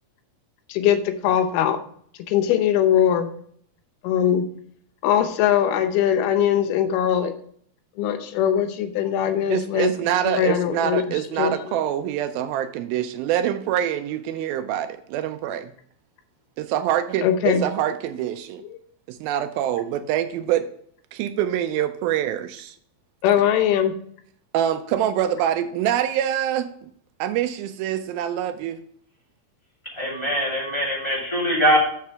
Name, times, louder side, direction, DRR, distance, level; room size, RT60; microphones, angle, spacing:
voice 1, 0.7-1.8 2.2-3.3 4.0-4.5 5.0-7.3 8.0-10.0 10.3-11.0 11.4-11.7 17.2-17.6 18.7-18.8 23.2-23.9, left 9 dB, 85° left, 8 dB, 2.8 m, -21 dB
voice 2, 9.5-15.7 16.6-18.6 19.1-20.7 21.1-22.8 24.5-26.9 27.2-28.8, right 11 dB, 80° right, 10 dB, 2.3 m, -25 dB
voice 3, 30.0-31.8, equal, 10° left, -4 dB, 1.7 m, -22 dB
7.4 x 6.0 x 4.5 m, 0.63 s
omnidirectional pair, 4.4 m